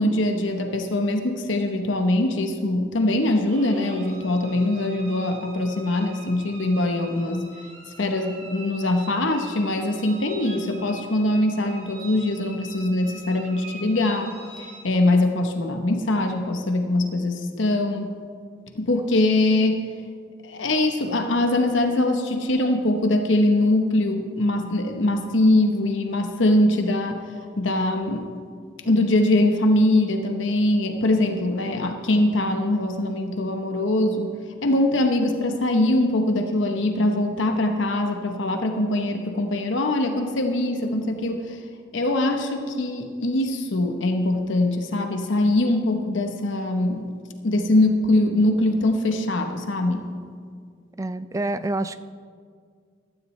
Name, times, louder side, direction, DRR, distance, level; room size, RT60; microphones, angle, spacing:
voice 1, 0.0-7.4 8.0-18.1 18.7-19.9 20.4-27.2 27.6-28.3 28.8-34.3 34.6-41.6 41.9-47.1 47.4-50.1, left 1 dB, 70° left, 5 dB, 0.9 m, -22 dB
sound 1, 3.5-14.9, right 2 dB, 70° right, 2.0 m, -44 dB
voice 2, 51.0-52.0, right 2 dB, 15° right, 13 dB, 0.3 m, -27 dB
15.0 x 12.5 x 3.2 m, 2.1 s
head